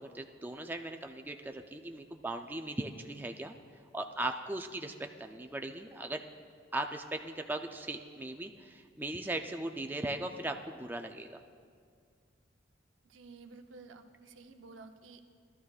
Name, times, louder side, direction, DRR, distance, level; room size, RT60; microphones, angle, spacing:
voice 1, 0.0-3.5 3.9-6.2 6.7-11.4, right 2 dB, 10° right, 4 dB, 0.4 m, -38 dB
voice 2, 13.0-15.2, right 3 dB, 90° right, 6 dB, 0.7 m, -52 dB
17.0 x 12.0 x 2.4 m, 2.1 s
head